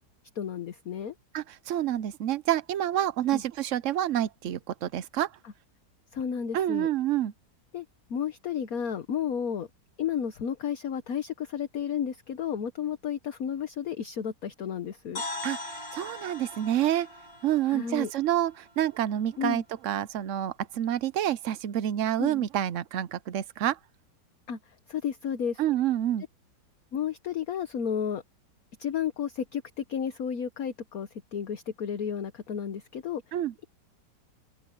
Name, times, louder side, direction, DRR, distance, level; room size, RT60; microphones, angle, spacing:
voice 1, 0.3-1.1 3.3-3.4 5.4-5.5 6.1-6.9 7.7-9.7 10.0-15.2 17.7-18.1 19.4-19.6 22.2-22.4 24.5-24.6 24.9-25.6 26.9-28.2 28.8-33.2, left 8 dB, 55° left, 1.4 m, -32 dB
voice 2, 1.3-5.3 6.5-7.3 15.4-15.6 15.9-17.1 17.4-23.8 25.6-26.2 33.3-33.5, right 12 dB, 65° right, 0.8 m, -28 dB
sound 1, 15.2-19.1, left 2 dB, 75° left, 5.7 m, -40 dB
open air
omnidirectional pair, 2.0 m